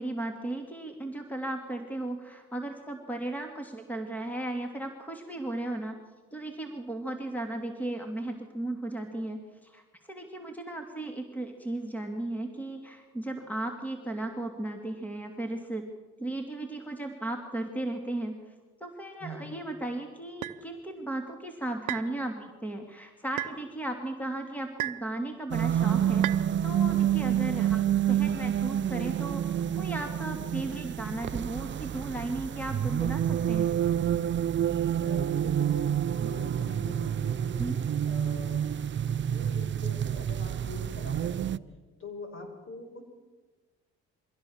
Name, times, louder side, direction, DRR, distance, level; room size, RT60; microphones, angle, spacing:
voice 1, 0.0-6.0 6.3-15.9 16.2-18.5 18.8-26.3 26.6-29.4 29.7-33.7 37.6-37.8, right 2 dB, 5° left, 4 dB, 2.7 m, -35 dB
voice 2, 19.2-19.5 35.0-37.7 38.1-41.7 42.0-43.0, left 1 dB, 40° left, 5 dB, 5.8 m, -43 dB
sound 1, 20.4-20.6 21.9-22.1 23.4-23.6 24.8-25.1 26.2-26.4, right 16 dB, 70° right, 0.9 m, -33 dB
sound 2, 25.5-41.6, right 10 dB, 35° right, 0.6 m, -28 dB
24.0 x 16.0 x 7.4 m, 1.3 s
supercardioid pair, 65°, 32 cm